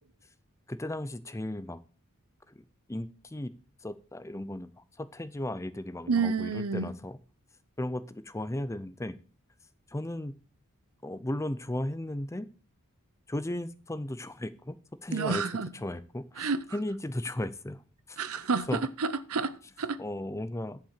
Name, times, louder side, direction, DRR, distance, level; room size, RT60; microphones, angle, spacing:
voice 1, 0.7-1.8 2.5-2.6 2.9-3.5 3.8-7.2 7.8-9.2 9.9-10.3 11.0-12.5 13.3-14.8 15.0-15.4 15.8-17.8 18.1-18.8 20.0-20.8, left 1 dB, 15° left, 0.6 m, -35 dB
voice 2, 6.1-7.0 15.1-15.7 16.4-16.6 18.2-20.0, right 4 dB, 85° right, 0.8 m, -30 dB
10.5 x 5.8 x 6.5 m
head